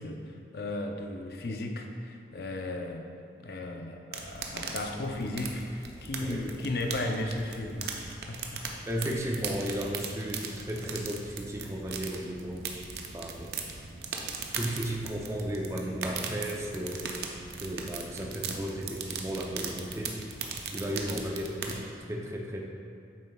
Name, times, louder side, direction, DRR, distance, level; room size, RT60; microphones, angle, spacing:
voice 1, 0.0-3.1 3.4-8.0 8.3-8.6, left 2 dB, 55° left, 3 dB, 0.6 m, -35 dB
sound 1, 4.1-21.8, right 5 dB, 60° right, 0.6 m, -39 dB
voice 2, 8.8-12.7 13.1-13.5 14.5-17.1 17.6-20.2 20.7-21.8 22.1-22.6, equal, 15° right, -1 dB, 0.6 m, -34 dB
8.5 x 6.6 x 2.3 m, 2.4 s
head